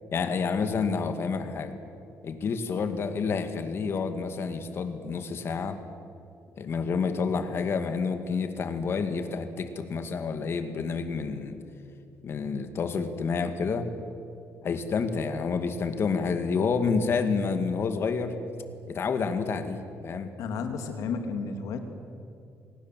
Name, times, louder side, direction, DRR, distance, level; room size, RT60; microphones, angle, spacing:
voice 1, 0.1-1.7 2.2-5.8 6.6-11.6 12.2-13.9 14.6-18.4 18.9-20.3, left 5 dB, 50° left, 8 dB, 2.1 m, -29 dB
voice 2, 20.4-21.8, left 5 dB, 85° left, 6 dB, 2.5 m, -32 dB
27.5 x 19.0 x 7.7 m, 2.6 s
cardioid pair, 125°, 5 cm